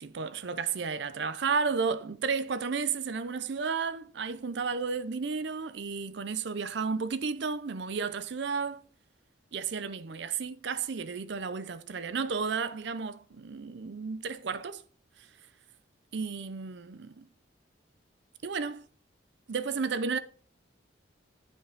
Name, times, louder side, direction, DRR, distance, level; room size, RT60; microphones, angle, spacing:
voice 1, 0.0-8.8 9.5-14.8 15.2-15.3 16.1-17.3 18.4-18.8 19.5-20.2, right 5 dB, 65° right, 0.5 m, -32 dB
9.8 x 5.3 x 5.9 m
head